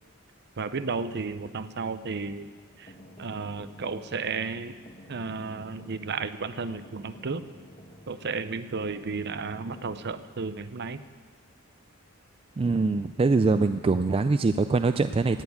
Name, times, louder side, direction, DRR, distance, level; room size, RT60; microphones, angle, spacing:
voice 1, 0.6-2.5 2.8-2.9 3.2-4.8 5.1-7.4 8.1-11.0, right 4 dB, 50° right, 12 dB, 0.7 m, -33 dB
sound 1, 2.6-10.3, equal, 30° left, 1.3 m, -52 dB
voice 2, 12.6-15.4, right 3 dB, 25° right, 10 dB, 0.3 m, -23 dB
17.0 x 7.2 x 9.4 m, 1.5 s
head